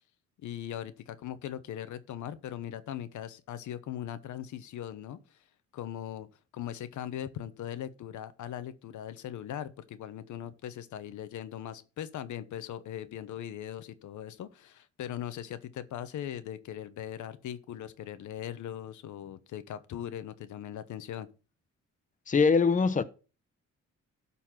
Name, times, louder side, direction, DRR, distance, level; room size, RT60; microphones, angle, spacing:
voice 1, 0.4-5.4 5.7-6.3 6.5-21.3, left 10 dB, 75° left, 1.0 m, -40 dB
voice 2, 22.3-23.0, left 5 dB, 25° left, 0.8 m, -23 dB
12.0 x 4.3 x 5.8 m
cardioid pair, 90°, 30 cm